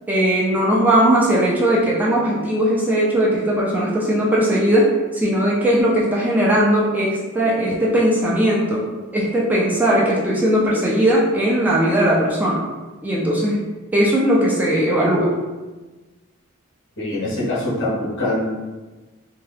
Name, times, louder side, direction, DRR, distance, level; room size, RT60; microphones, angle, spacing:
voice 1, 0.1-8.8 9.1-12.6 13.0-15.3, right 1 dB, 10° right, -6 dB, 0.4 m, -18 dB
voice 2, 17.0-18.5, left 1 dB, 60° left, -6 dB, 1.0 m, -23 dB
2.8 x 2.2 x 3.2 m, 1.2 s
head